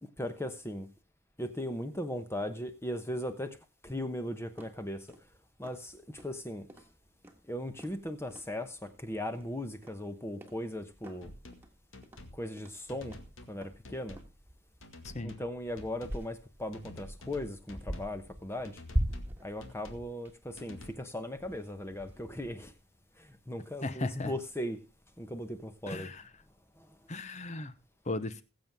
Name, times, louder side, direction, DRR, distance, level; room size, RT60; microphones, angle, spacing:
voice 1, 0.0-0.9 1.4-3.6 3.8-5.2 5.6-6.7 7.5-11.3 12.3-13.2 13.5-14.2 15.2-18.8 19.4-22.7 23.2-24.8 25.2-26.1 26.8-27.0, left 1 dB, 15° left, 1.0 m, -38 dB
sound 1, 4.6-22.7, equal, 10° right, 1.6 m, -42 dB
sound 2, 11.2-11.7 11.9-12.4 12.9-13.6 13.8-14.3 14.8-15.5 15.8-16.2 16.7-18.1 18.6-19.3 19.6-20.1 20.6-20.9, left 1 dB, 80° left, 2.0 m, -49 dB
voice 2, 23.8-24.3 25.9-26.2 27.1-27.8 28.1-28.4, left 2 dB, 35° left, 0.9 m, -36 dB
21.0 x 7.6 x 3.5 m
head